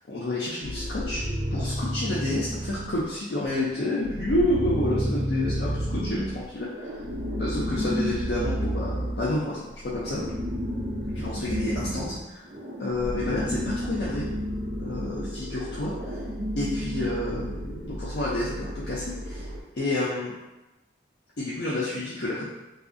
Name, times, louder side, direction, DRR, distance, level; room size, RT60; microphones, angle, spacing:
voice 1, 0.1-1.3 1.5-7.0 7.4-9.6 9.8-10.2 11.1-12.5 12.8-14.3 14.8-16.2 16.6-19.5 19.7-20.3 21.4-22.5, left 1 dB, 65° left, -8 dB, 0.5 m, -29 dB
sound 1, 0.6-3.1 3.4-19.6, equal, 50° right, 0.4 m, -31 dB
2.6 x 2.3 x 2.5 m, 1.0 s
head